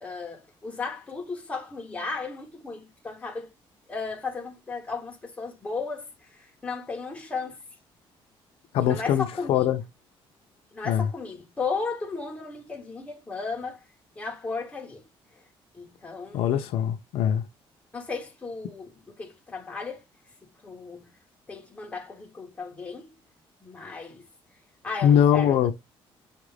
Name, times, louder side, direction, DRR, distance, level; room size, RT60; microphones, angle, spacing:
voice 1, 0.0-3.5 3.9-7.6 8.7-9.7 10.7-13.8 14.2-15.4 15.7-16.6 17.9-20.0 20.4-21.1 21.5-23.2 23.6-24.3 24.8-25.6, left 4 dB, 15° left, 0.9 m, -35 dB
voice 2, 8.7-9.8 10.8-11.1 16.3-17.5 25.0-25.7, left 9 dB, 85° left, 0.6 m, -22 dB
5.7 x 2.5 x 3.2 m
cardioid pair, 180°, 10 cm